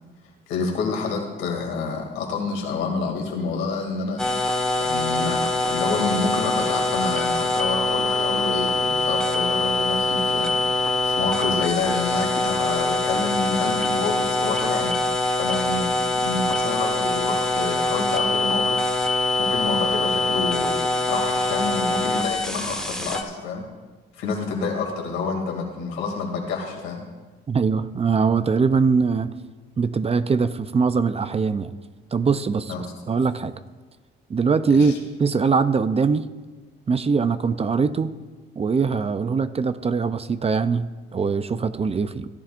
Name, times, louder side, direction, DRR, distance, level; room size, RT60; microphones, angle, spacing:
voice 1, 0.5-4.2 4.8-10.5 11.0-14.9 15.3-23.6 24.2-27.0 32.7-32.8 34.7-34.9, left 4 dB, 90° left, 0 dB, 2.6 m, -28 dB
sound 1, 4.2-23.2, left 2 dB, 5° left, 1.4 m, -23 dB
voice 2, 27.5-29.3 29.8-31.7 32.1-33.5 34.3-36.3 36.9-38.2 38.6-42.3, right 5 dB, 30° right, 12 dB, 0.5 m, -22 dB
17.0 x 11.5 x 2.5 m, 1.3 s
cardioid pair, 90°, 20 cm